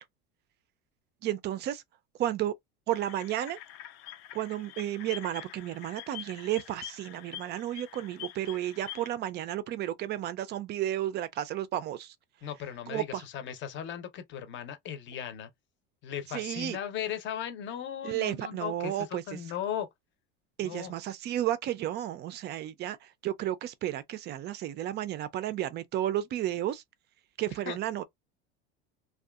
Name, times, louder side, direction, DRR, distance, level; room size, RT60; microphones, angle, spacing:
voice 1, 1.2-1.8 2.2-2.5 2.9-3.6 4.3-12.1 12.9-13.2 16.3-16.8 18.0-19.4 20.6-26.8 27.4-28.0, right 12 dB, 35° right, 0.4 m, -32 dB
sound 1, 2.9-9.1, left 12 dB, 75° left, 0.6 m, -45 dB
voice 2, 12.4-15.5 16.0-19.9 20.6-20.9 27.7-27.8, left 9 dB, 40° left, 0.7 m, -37 dB
2.6 x 2.3 x 2.3 m
supercardioid pair, 130°, 30 cm